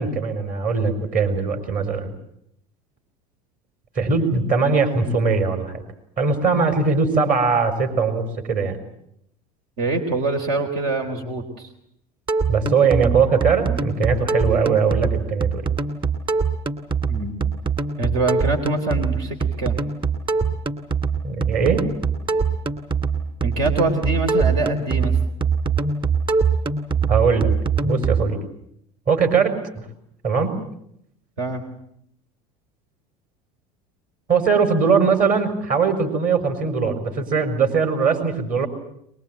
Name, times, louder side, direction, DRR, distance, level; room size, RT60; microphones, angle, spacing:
voice 1, 0.0-2.1 3.9-5.7 6.2-8.8 12.5-15.7 21.2-21.9 27.1-27.5 27.8-28.4 29.1-29.9 30.2-30.5 34.3-38.7, right 5 dB, 45° right, 7 dB, 5.0 m, -20 dB
voice 2, 9.8-11.7 17.1-17.4 18.0-19.8 23.4-25.2 31.4-31.6, right 2 dB, 70° right, 4 dB, 3.9 m, -24 dB
sound 1, 12.3-28.2, right 5 dB, 25° right, 2.7 m, -23 dB
22.5 x 22.0 x 9.1 m, 0.73 s
hypercardioid pair, 90°, 20 cm